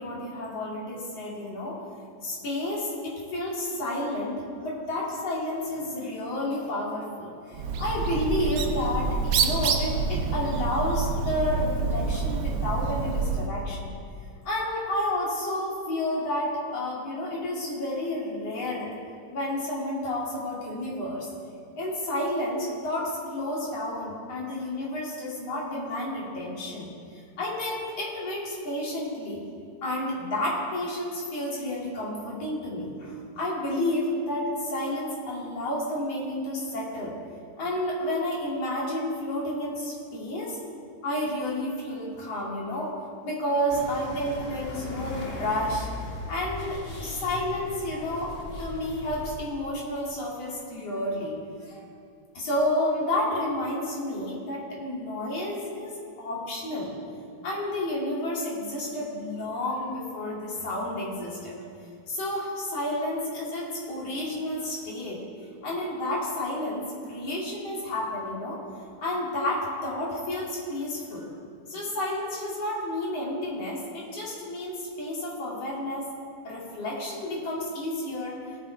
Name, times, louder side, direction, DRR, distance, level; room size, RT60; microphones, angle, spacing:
voice 1, 0.0-1.8 2.2-13.9 14.4-18.9 19.3-21.3 21.8-29.4 29.8-37.1 37.6-40.6 41.0-42.9 43.2-45.9 46.3-48.3 48.6-51.9 52.3-56.9 57.4-61.6 62.1-65.2 65.6-68.6 69.0-71.3 71.7-76.1 76.4-78.4, left 1 dB, 50° left, -5 dB, 3.7 m, -31 dB
Bird, 7.5-13.5, right 4 dB, 70° right, 1.4 m, -27 dB
sound 1, 43.7-49.4, left 2 dB, 70° left, 0.5 m, -38 dB
18.5 x 7.5 x 4.7 m, 2.3 s
omnidirectional pair, 3.6 m